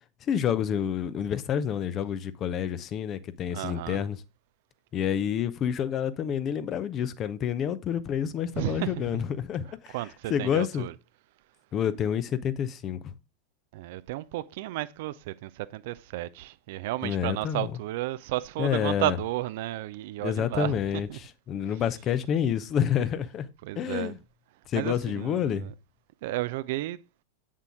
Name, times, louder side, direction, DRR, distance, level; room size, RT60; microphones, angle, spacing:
voice 1, 0.2-4.2 4.9-10.0 10.3-10.9 11.7-13.1 17.0-17.7 18.6-19.2 20.2-23.5 23.7-24.2 24.7-25.7, left 9 dB, 30° left, 0.8 m, -28 dB
voice 2, 3.5-4.0 8.5-9.2 9.9-10.9 13.7-20.8 21.1-21.2 23.6-24.1 24.7-25.7 26.2-27.0, right 16 dB, 50° right, 0.5 m, -33 dB
8.4 x 7.4 x 3.7 m
figure-of-eight pair, 90°, 0 cm